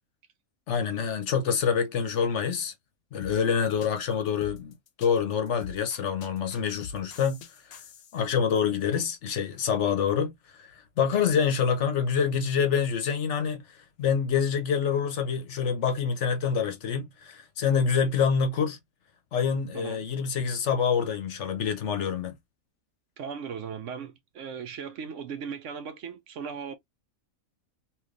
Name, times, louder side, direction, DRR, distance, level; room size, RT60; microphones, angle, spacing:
voice 1, 0.7-2.7 3.1-7.4 7.7-7.8 8.1-10.3 10.6-13.6 14.0-18.8 19.3-22.3, left 6 dB, 60° left, 0.9 m, -26 dB
sound 1, 3.2-8.3, left 5 dB, 90° left, 1.1 m, -44 dB
voice 2, 23.2-26.8, right 6 dB, 65° right, 0.9 m, -37 dB
3.3 x 2.9 x 2.4 m
omnidirectional pair, 1.5 m